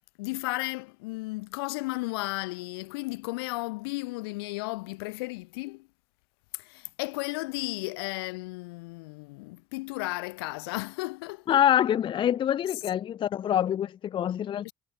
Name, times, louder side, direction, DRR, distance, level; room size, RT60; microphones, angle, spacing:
voice 1, 0.2-5.9 6.5-11.6 14.6-14.7, left 25 dB, 85° left, 0.8 m, -34 dB
voice 2, 11.5-14.7, left 10 dB, 40° left, 0.4 m, -25 dB
hypercardioid pair, 65°, 12 cm